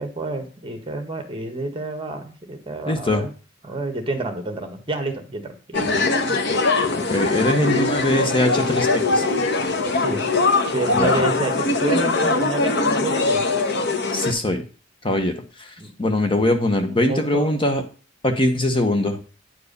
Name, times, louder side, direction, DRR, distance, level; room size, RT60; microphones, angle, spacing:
voice 1, 0.0-3.3 3.6-6.4 9.9-10.3 10.7-13.4 15.8-15.9 16.8-17.5, right 2 dB, 25° right, 6 dB, 1.6 m, -29 dB
voice 2, 2.9-3.2 7.1-9.2 10.9-11.3 14.1-14.6 15.0-17.8 18.2-19.2, left 1 dB, 25° left, 6 dB, 1.1 m, -22 dB
sound 1, 5.7-14.3, left 3 dB, 60° left, 1.3 m, -21 dB
10.0 x 4.8 x 6.7 m, 0.37 s
head